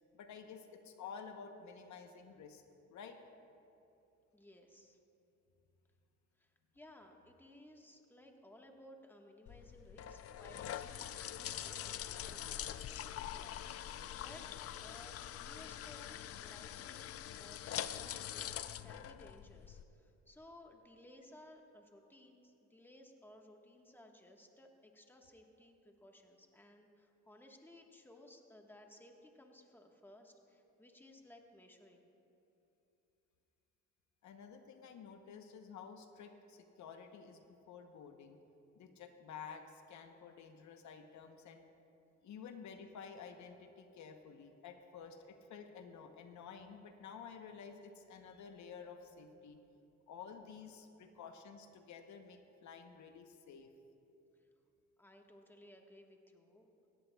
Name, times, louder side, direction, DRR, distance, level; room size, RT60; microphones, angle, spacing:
voice 1, 0.1-2.6 2.9-3.2 11.5-11.6 34.2-38.4 38.8-41.6 42.2-49.6 50.1-53.7, left 6 dB, 70° left, 6 dB, 0.8 m, -52 dB
voice 2, 4.3-5.0 6.4-14.5 14.8-32.1 55.0-56.7, left 1 dB, 5° left, 2 dB, 1.3 m, -59 dB
sound 1, 9.5-19.8, left 11 dB, 50° left, 0.4 m, -44 dB
17.0 x 16.0 x 2.3 m, 2.8 s
cardioid pair, 90°, 30 cm